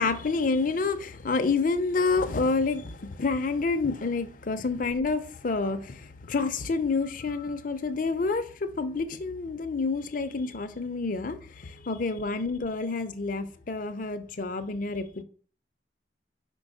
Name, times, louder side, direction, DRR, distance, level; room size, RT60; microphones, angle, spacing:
voice 1, 0.0-15.2, left 4 dB, 45° left, 0.5 m, -28 dB
5.3 x 4.6 x 4.8 m
head